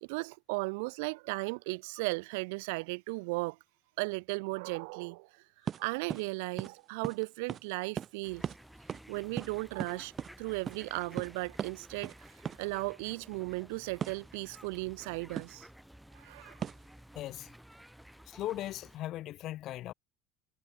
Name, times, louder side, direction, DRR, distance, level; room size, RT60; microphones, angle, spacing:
voice 1, 0.0-3.6 4.0-5.4 5.8-8.4 9.1-10.1 10.4-15.7 16.1-16.6, right 28 dB, 80° right, 1.9 m, -36 dB
sound 1, 5.7-5.8 6.1-6.3 6.6-6.7 7.0-7.2 7.5-7.6 8.0-8.1 8.4-8.6 8.9-9.1 9.4-10.3 10.7-10.8 11.2-11.3 11.6-11.7 12.0-12.2 12.4-12.6 14.0-14.2 15.4-15.6 16.6-16.9, right 8 dB, 30° right, 0.4 m, -37 dB
sound 2, 8.2-19.0, equal, ahead, 2.5 m, -54 dB
voice 2, 17.1-17.5 18.3-19.9, left 14 dB, 45° left, 0.6 m, -38 dB
cardioid pair, 150°, 0 cm